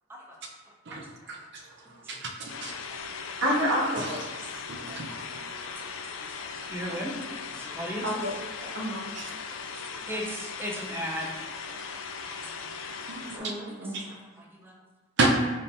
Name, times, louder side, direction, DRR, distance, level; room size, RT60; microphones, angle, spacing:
voice 1, 0.9-1.4 2.1-2.3 2.6-2.7 4.7-5.1 9.2-9.3 13.1-13.5 13.9-14.1 15.2-15.3, right 3 dB, 60° right, 1 dB, 0.6 m, -30 dB
voice 2, 2.0-2.6 5.8-7.2 7.5-8.1 9.7-11.3 11.7-11.9 12.2-12.7 13.3-14.8, equal, 10° right, -1 dB, 0.5 m, -38 dB
sound 1, 2.5-13.4, left 5 dB, 75° left, 0.4 m, -39 dB
voice 3, 3.4-4.2 4.5-4.6 8.0-8.3 8.7-9.0 13.3-13.9, equal, 85° right, -5 dB, 1.2 m, -28 dB
4.2 x 3.6 x 2.6 m, 1.3 s
head